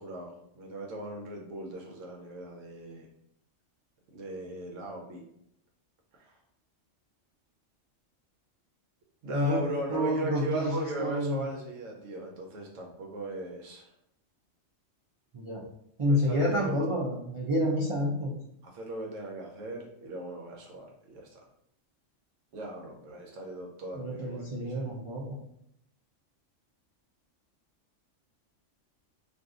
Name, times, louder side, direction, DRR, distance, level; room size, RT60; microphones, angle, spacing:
voice 1, 0.0-3.1 4.1-5.2 6.1-6.4 9.2-13.9 16.0-16.8 18.6-21.4 22.5-24.8, right 1 dB, 80° right, 0 dB, 1.0 m, -38 dB
voice 2, 9.9-11.5 15.3-15.6 16.0-18.3 24.0-25.4, equal, 45° right, -5 dB, 0.4 m, -29 dB
2.6 x 2.3 x 3.6 m, 0.74 s
omnidirectional pair, 1.3 m